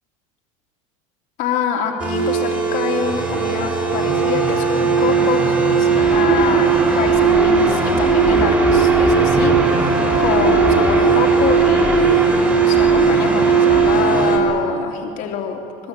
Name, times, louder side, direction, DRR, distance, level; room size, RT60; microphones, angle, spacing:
voice 1, 1.4-15.6, left 7 dB, 50° left, 0 dB, 3.2 m, -25 dB
sound 1, 2.0-14.4, right 4 dB, 10° right, 5.6 m, -16 dB
25.0 x 20.5 x 9.0 m, 2.7 s
cardioid pair, 145°, 17 cm